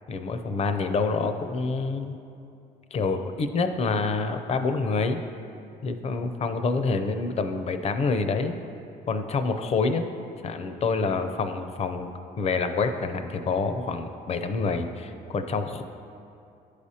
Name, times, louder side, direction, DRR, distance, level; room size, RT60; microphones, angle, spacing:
voice 1, 0.1-2.2 2.9-5.2 5.8-8.6 9.1-10.1 10.4-12.1 12.4-15.8, left 4 dB, 40° left, 8 dB, 0.5 m, -27 dB
11.5 x 4.9 x 2.8 m, 2.6 s
cardioid pair, 110°, 17 cm